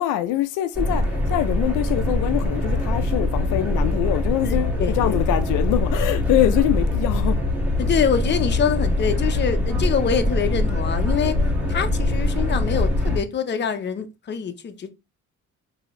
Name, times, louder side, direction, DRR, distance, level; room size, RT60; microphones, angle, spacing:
voice 1, 0.0-7.4, left 13 dB, 90° left, 0.5 m, -24 dB
sound 1, 0.7-13.2, left 1 dB, 5° right, 1.6 m, -23 dB
voice 2, 4.4-5.1 7.8-11.4 11.7-14.9, left 7 dB, 35° left, 0.6 m, -25 dB
3.8 x 2.8 x 3.1 m
cardioid pair, 90°, 30 cm